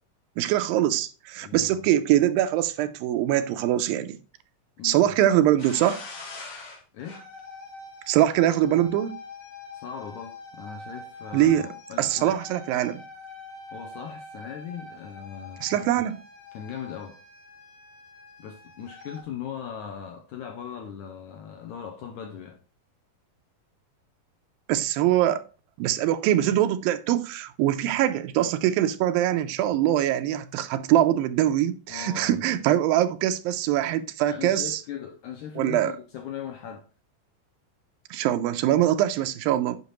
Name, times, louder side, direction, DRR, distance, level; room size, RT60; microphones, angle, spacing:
voice 1, 0.4-4.2 4.8-6.0 8.1-9.2 11.3-11.7 12.0-13.0 15.6-16.2 24.7-25.4 25.8-34.8 35.6-35.9 38.1-39.8, right 12 dB, 80° right, 2.3 m, -23 dB
voice 2, 1.4-1.9 4.8-5.1 6.9-7.2 9.7-12.4 13.7-15.9 16.5-17.2 18.4-22.6 31.9-32.6 33.5-33.6 34.3-36.9, left 8 dB, 80° left, 1.8 m, -39 dB
sound 1, 5.6-19.2, left 3 dB, 50° left, 2.0 m, -44 dB
8.3 x 5.7 x 3.0 m
omnidirectional pair, 4.1 m